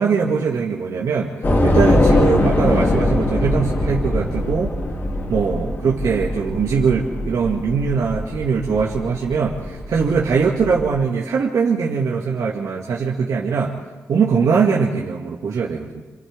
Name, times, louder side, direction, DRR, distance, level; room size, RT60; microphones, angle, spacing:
voice 1, 0.0-1.3 1.6-4.7 5.3-13.7 14.1-16.0, right 5 dB, 85° right, -3 dB, 2.2 m, -21 dB
Train / Subway metro underground, 1.4-10.9, left 1 dB, 45° left, 3.2 m, -22 dB
29.0 x 27.0 x 3.7 m, 1.3 s
cardioid pair, 90°, 6 cm